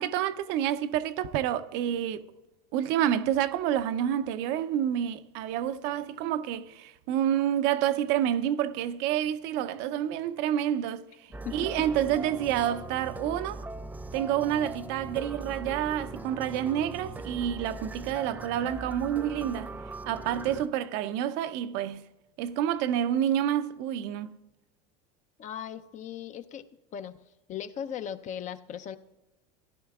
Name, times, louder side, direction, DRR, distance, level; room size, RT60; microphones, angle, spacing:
voice 1, 0.0-2.2 2.7-13.6 14.1-19.7 20.0-22.1 22.4-24.3, right 10 dB, 60° right, 0.6 m, -28 dB
sound 1, 11.3-20.7, right 2 dB, 10° right, 0.3 m, -40 dB
voice 2, 11.4-11.9 25.4-26.7 26.9-27.2 27.5-29.0, left 9 dB, 40° left, 0.6 m, -38 dB
16.0 x 11.0 x 2.3 m
supercardioid pair, 110°, 20 cm